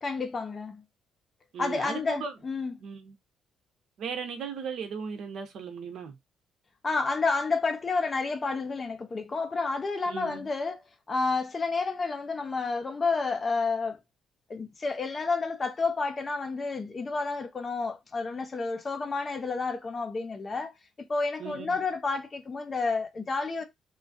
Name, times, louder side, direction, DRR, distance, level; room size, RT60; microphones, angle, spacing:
voice 1, 0.0-0.8 1.6-2.8 6.8-10.8 11.1-14.0 14.5-20.7 21.0-23.6, left 4 dB, 25° left, 0.5 m, -30 dB
voice 2, 1.5-2.3 2.8-3.1 4.0-6.2 10.1-10.5 21.4-21.8, right 6 dB, 60° right, 0.7 m, -37 dB
3.1 x 2.3 x 2.6 m
cardioid pair, 150°, 0 cm